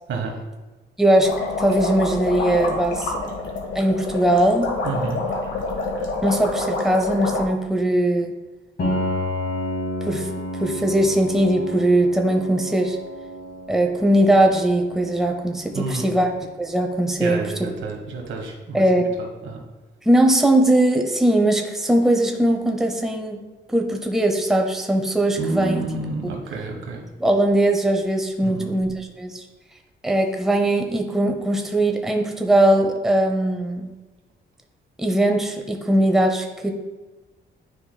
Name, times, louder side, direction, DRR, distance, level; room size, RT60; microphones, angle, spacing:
voice 1, 1.0-3.1 3.7-4.8 6.2-8.3 10.0-10.3 10.6-13.0 13.7-17.7 18.7-19.0 20.0-23.4 23.7-25.8 27.2-29.4 30.0-33.9 35.0-36.7, right 1 dB, ahead, 3 dB, 0.7 m, -20 dB
sound 1, 1.2-7.4, left 3 dB, 80° left, 1.3 m, -27 dB
voice 2, 4.8-5.2 15.7-16.1 17.2-18.8 19.2-19.6 25.4-27.0 28.4-28.7, right 3 dB, 80° right, 2 dB, 1.4 m, -29 dB
Piano, 8.8-18.4, left 1 dB, 55° left, 1.9 m, -32 dB
9.8 x 4.9 x 2.2 m, 1.2 s
cardioid pair, 105°, 20 cm